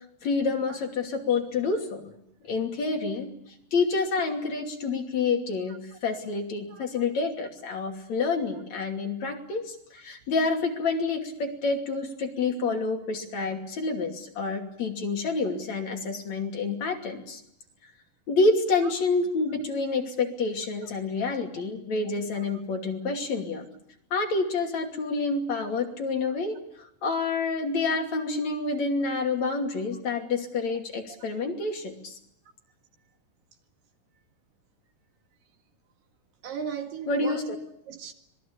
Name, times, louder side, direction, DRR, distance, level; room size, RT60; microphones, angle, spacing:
voice 1, 0.2-2.1 2.5-3.3 3.7-17.4 18.3-23.7 24.1-26.6 27.0-32.2 37.1-37.4, left 3 dB, 50° left, 3.9 m, -28 dB
voice 2, 6.7-7.1 18.8-18.9 19.5-19.6 22.3-22.4 36.4-37.5 37.9-38.1, right 7 dB, 70° right, 3.6 m, -37 dB
25.5 x 20.0 x 8.6 m
omnidirectional pair, 4.1 m